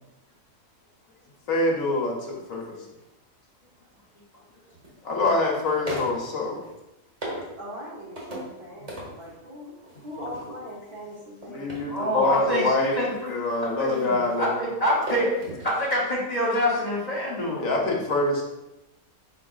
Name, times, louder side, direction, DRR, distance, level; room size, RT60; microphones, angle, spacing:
voice 1, 1.5-2.8 5.0-6.6 11.5-13.0 13.3-14.5 17.6-18.4, left 2 dB, 65° left, -1 dB, 1.2 m, -25 dB
sound 1, 2.9-3.0 4.4-5.3 5.9-6.7 7.2-7.6 8.2-8.6 8.9-9.4 9.8-15.7 16.0-16.1, right 1 dB, 25° right, 1.1 m, -38 dB
voice 2, 7.6-11.9, equal, 80° right, -4 dB, 1.9 m, -40 dB
voice 3, 11.9-13.3 13.8-15.4 15.6-17.7, equal, 30° left, -5 dB, 0.8 m, -26 dB
4.8 x 4.4 x 2.4 m, 0.96 s
omnidirectional pair, 1.6 m